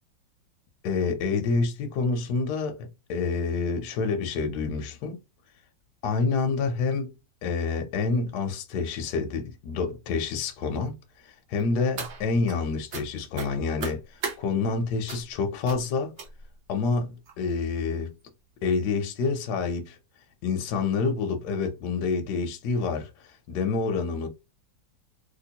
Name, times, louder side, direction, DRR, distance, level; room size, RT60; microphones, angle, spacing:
voice 1, 0.8-5.2 6.0-7.1 7.4-10.9 11.2-16.1 16.7-18.1 18.6-20.0 20.4-24.3, left 4 dB, 65° left, 1.2 m, -28 dB
sound 1, 11.6-12.6 12.9-13.1 13.3-14.4 15.1-15.3 15.6-15.8 16.2-16.6 17.3-17.4 17.8-17.9 18.2-18.3, right 4 dB, 55° right, 0.8 m, -36 dB
3.2 x 2.9 x 2.8 m
omnidirectional pair, 2.0 m